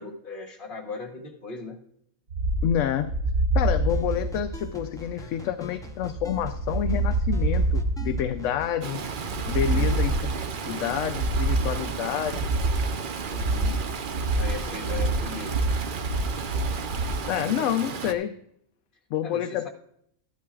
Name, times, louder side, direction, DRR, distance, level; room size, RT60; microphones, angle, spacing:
voice 1, 0.0-1.8 9.6-10.0 13.3-13.8 14.3-15.5 19.2-19.7, left 4 dB, 40° left, 2 dB, 1.7 m, -38 dB
sound 1, 2.3-17.2, right 2 dB, 75° right, 2.0 m, -27 dB
voice 2, 2.6-3.1 3.5-9.0 9.5-10.3 10.7-12.5 17.3-18.3 19.1-19.7, left 10 dB, 70° left, 9 dB, 0.9 m, -28 dB
sound 2, 3.9-10.7, left 1 dB, 5° left, 0.5 m, -44 dB
Stream, 8.8-18.1, right 6 dB, 50° right, 0.7 m, -34 dB
14.0 x 11.5 x 2.4 m, 0.72 s
omnidirectional pair, 1.4 m